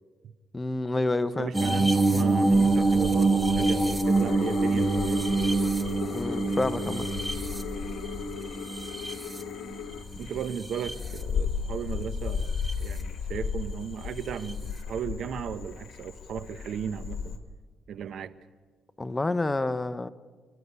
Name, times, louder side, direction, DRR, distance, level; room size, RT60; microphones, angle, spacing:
voice 1, 0.5-1.5 6.1-7.0 19.0-20.1, left 2 dB, 15° left, 0.9 m, -28 dB
voice 2, 1.4-5.2 10.2-17.4 17.9-18.3, right 7 dB, 65° right, 0.9 m, -36 dB
sound 1, 1.5-9.9 10.4-11.2 12.4-12.7 14.5-14.6, right 3 dB, 10° right, 1.7 m, -26 dB
Frog, 2.5-17.4, left 6 dB, 60° left, 2.4 m, -36 dB
sound 2, 4.0-10.0, left 11 dB, 85° left, 0.9 m, -39 dB
29.5 x 11.5 x 9.6 m
cardioid pair, 90°, 0 cm